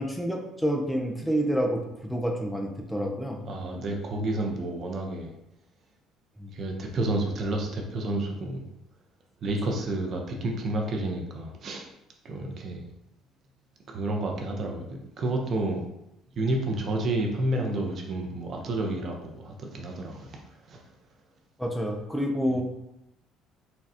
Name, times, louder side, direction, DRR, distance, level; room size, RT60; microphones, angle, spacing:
voice 1, 0.0-3.4 6.4-6.5 21.6-22.6, equal, 5° left, 1 dB, 0.6 m, -28 dB
voice 2, 3.5-5.3 6.5-8.6 9.4-11.9 12.2-12.8 13.9-14.9 15.2-15.8 16.4-20.4 20.7-20.8, right 2 dB, 50° right, 1 dB, 0.6 m, -30 dB
4.1 x 2.3 x 2.7 m, 0.85 s
supercardioid pair, 75°, 0 cm